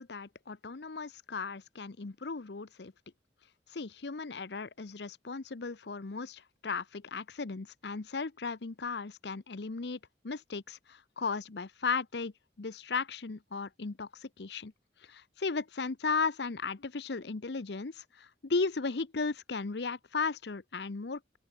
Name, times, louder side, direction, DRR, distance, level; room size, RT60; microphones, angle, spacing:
voice 1, 0.0-2.9 3.7-10.0 10.2-12.3 12.6-14.7 15.1-21.4, left 4 dB, 70° left, 0.8 m, -36 dB
open air
head